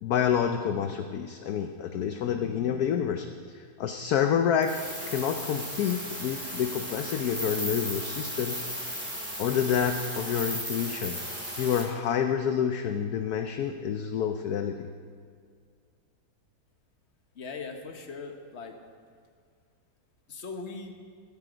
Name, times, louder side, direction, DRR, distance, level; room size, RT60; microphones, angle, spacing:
voice 1, 0.0-4.8 5.1-8.6 9.4-11.2 11.6-14.9, left 8 dB, 65° left, 6 dB, 1.1 m, -28 dB
sound 1, 4.6-11.8, equal, 5° right, 3.6 m, -35 dB
voice 2, 17.4-18.7 20.3-20.9, left 4 dB, 40° left, 4 dB, 1.4 m, -39 dB
14.5 x 14.5 x 5.1 m, 2.1 s
omnidirectional pair, 1.9 m